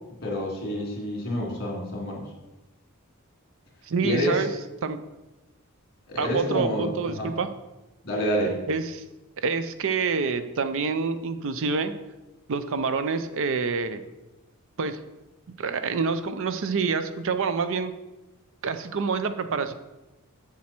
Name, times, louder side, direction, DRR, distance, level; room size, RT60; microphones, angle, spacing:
voice 1, 0.2-2.3 4.0-4.5 6.1-7.3 8.0-8.6, equal, 45° left, -2 dB, 2.8 m, -28 dB
voice 2, 3.9-4.5 4.8-5.0 6.2-7.5 8.7-9.0 9.4-11.9 12.5-14.0 14.8-15.0 15.6-17.9 18.6-19.7, right 5 dB, 60° right, 11 dB, 0.5 m, -27 dB
7.5 x 7.3 x 4.4 m, 1.0 s
head